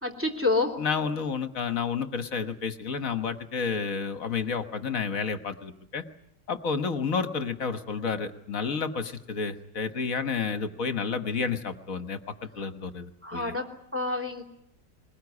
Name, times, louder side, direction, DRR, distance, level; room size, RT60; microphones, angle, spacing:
voice 1, 0.0-0.7 13.2-13.7 13.9-14.4, left 2 dB, 5° right, 3 dB, 3.1 m, -27 dB
voice 2, 0.8-6.0 6.5-13.5, left 5 dB, 55° left, 9 dB, 1.6 m, -30 dB
21.0 x 21.0 x 9.6 m, 0.75 s
omnidirectional pair, 1.8 m